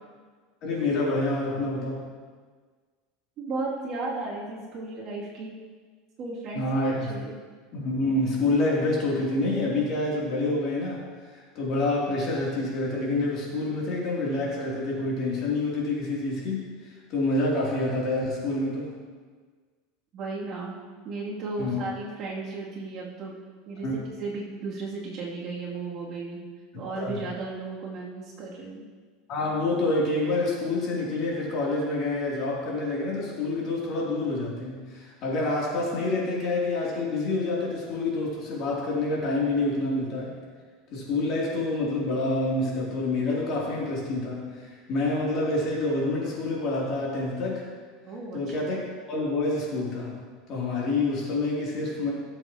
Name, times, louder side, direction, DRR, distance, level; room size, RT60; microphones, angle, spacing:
voice 1, 0.6-2.0 6.5-7.2 7.7-18.9 21.6-21.8 23.8-23.9 26.9-27.2 29.3-40.4 40.9-47.6 48.3-48.8 49.1-52.1, left 2 dB, 40° left, -4 dB, 3.0 m, -27 dB
voice 2, 3.4-5.5 6.2-7.4 20.1-20.8 21.0-23.3 23.7-26.4 26.7-28.8 48.0-48.5, right 3 dB, 35° right, -5 dB, 2.7 m, -35 dB
18.5 x 7.8 x 3.0 m, 1.5 s
supercardioid pair, 160°, 0 cm